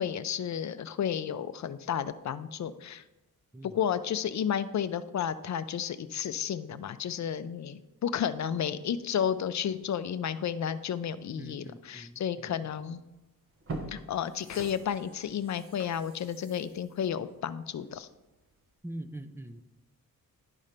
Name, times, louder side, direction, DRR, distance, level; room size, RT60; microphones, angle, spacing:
voice 1, 0.0-3.0 3.6-13.0 13.9-18.1, left 8 dB, 50° left, 13 dB, 0.5 m, -32 dB
voice 2, 11.4-12.5 18.8-19.6, right 1 dB, 5° right, 9 dB, 0.3 m, -43 dB
sound 1, 12.9-13.0 13.5-18.2 18.6-18.7, right 2 dB, 35° right, 1.0 m, -44 dB
11.0 x 4.3 x 5.1 m, 0.99 s
wide cardioid pair, 145°, 36 cm